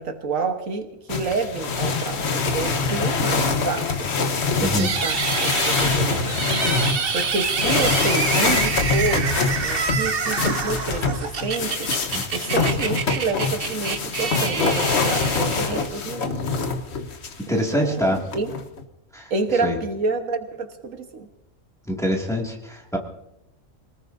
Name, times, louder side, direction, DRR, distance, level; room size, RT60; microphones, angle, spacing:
voice 1, 0.0-4.1 4.6-6.4 7.1-11.9 12.3-16.4 17.5-18.5 19.3-21.3, right 3 dB, 85° right, 6 dB, 1.7 m, -28 dB
sound 1, 1.1-17.4 18.2-18.8, left 4 dB, 55° left, 1.3 m, -24 dB
voice 2, 4.6-4.9 12.1-12.2 17.5-18.2 19.1-19.3 19.6-19.8 21.9-23.0, equal, ahead, -1 dB, 2.1 m, -24 dB
sound 2, 4.7-16.0, right 5 dB, 50° right, 1.1 m, -27 dB
25.0 x 19.0 x 2.7 m, 0.84 s
omnidirectional pair, 1.3 m